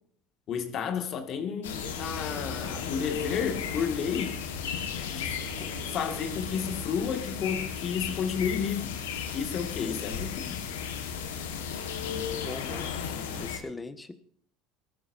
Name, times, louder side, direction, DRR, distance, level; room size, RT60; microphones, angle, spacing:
voice 1, 0.5-4.4 5.1-9.0 9.3-10.7, left 7 dB, 55° left, 2.3 m, -32 dB
sound 1, 1.6-13.6, left 7 dB, 90° left, 1.7 m, -35 dB
sound 2, 1.7-6.9, right 1 dB, 70° right, 4.8 m, -48 dB
voice 2, 9.8-10.3 12.1-14.1, left 3 dB, 15° left, 1.4 m, -41 dB
20.0 x 13.0 x 2.8 m
hypercardioid pair, 75°, 0 cm